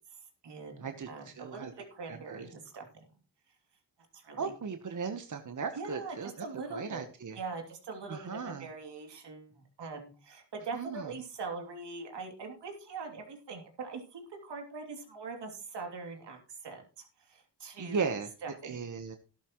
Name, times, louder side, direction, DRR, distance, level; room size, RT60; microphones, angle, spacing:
voice 1, 0.1-3.1 4.1-4.5 5.7-7.1 7.3-18.1 18.4-18.8, right 4 dB, 85° right, 2 dB, 3.0 m, -42 dB
voice 2, 0.8-1.7 2.1-2.5 4.4-6.5 6.7-7.4 8.1-8.7 10.7-11.0 17.8-18.3 18.6-19.2, right 5 dB, 45° right, 7 dB, 1.2 m, -37 dB
13.0 x 11.5 x 3.1 m, 0.35 s
cardioid pair, 70°, 41 cm